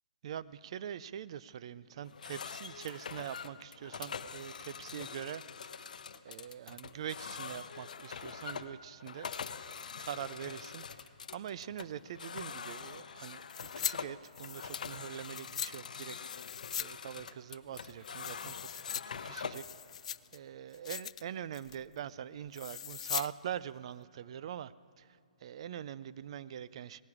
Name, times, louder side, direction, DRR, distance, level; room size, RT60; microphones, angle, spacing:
voice 1, 0.2-5.9 6.2-9.3 10.0-16.2 16.8-19.6 20.3-25.1 25.4-27.0, right 9 dB, 45° right, 17 dB, 0.4 m, -43 dB
sound 1, 2.0-19.7, left 6 dB, 70° left, 0.8 m, -44 dB
sound 2, 13.5-13.9 14.2-15.7 16.3-16.9 17.2-17.3 17.7-19.0 19.4-20.4 20.7-21.2 21.5-21.8 22.5-23.3 23.6-23.7, left 9 dB, 55° left, 0.3 m, -40 dB
18.5 x 15.5 x 4.9 m, 2.5 s
hypercardioid pair, 160°, 4 cm